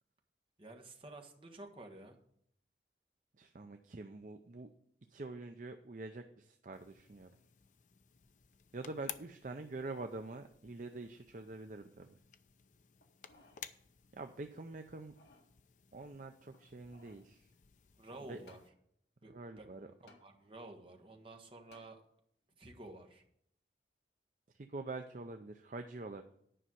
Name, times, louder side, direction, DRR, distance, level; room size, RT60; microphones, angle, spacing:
voice 1, 0.6-2.2 18.0-18.6 19.2-19.7 20.0-22.0 22.6-23.2, right 2 dB, 30° right, 3 dB, 1.4 m, -51 dB
voice 2, 3.4-4.7 5.1-7.3 8.7-12.1 14.1-15.1 15.9-17.5 18.3-18.4 19.2-19.9 24.6-26.2, right 3 dB, 45° right, 6 dB, 0.5 m, -45 dB
sound 1, 6.7-18.7, left 9 dB, 45° left, 0.5 m, -55 dB
sound 2, 13.0-13.6 14.1-14.2 14.9-15.5 16.5-17.3 18.5-18.7 20.1-20.2 21.7-21.9 22.5-22.6, left 2 dB, 65° left, 1.7 m, -63 dB
10.0 x 5.6 x 7.8 m, 0.70 s
head